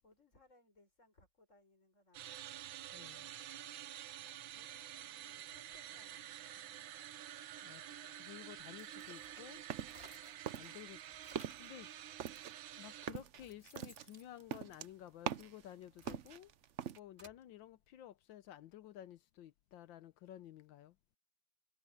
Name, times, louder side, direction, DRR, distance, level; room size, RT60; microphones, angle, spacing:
voice 1, 0.0-2.7 3.0-3.4 4.5-6.6, left 2 dB, 35° left, 7.0 m, -69 dB
sound 1, 2.1-13.1, right 11 dB, 80° right, 1.6 m, -49 dB
voice 2, 2.9-3.3 7.6-9.6 10.5-11.0 11.6-11.9 12.8-16.5 16.9-21.0, left 12 dB, 75° left, 1.4 m, -53 dB
sound 2, 8.6-10.5 10.9-11.8 12.6-12.7 13.1-15.3 15.8-17.4, right 2 dB, 25° right, 2.8 m, -61 dB
sound 3, 9.0-10.1 10.5-11.0 11.2-11.7 12.2-15.7 16.0-17.0, right 9 dB, 65° right, 0.7 m, -43 dB
omnidirectional pair, 2.1 m